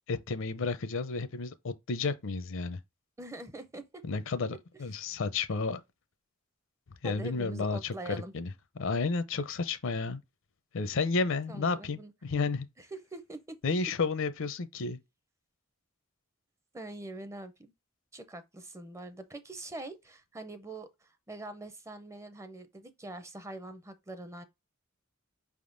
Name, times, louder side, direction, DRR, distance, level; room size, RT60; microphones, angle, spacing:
voice 1, 0.1-2.8 4.0-5.8 7.0-8.5 8.8-10.2 10.7-12.7 13.6-15.0, left 4 dB, 65° left, 0.6 m, -32 dB
voice 2, 3.2-4.0 7.0-8.3 11.5-12.1 12.8-13.6 16.7-17.5 18.1-24.4, right 2 dB, 15° right, 0.5 m, -44 dB
5.2 x 3.6 x 2.5 m
head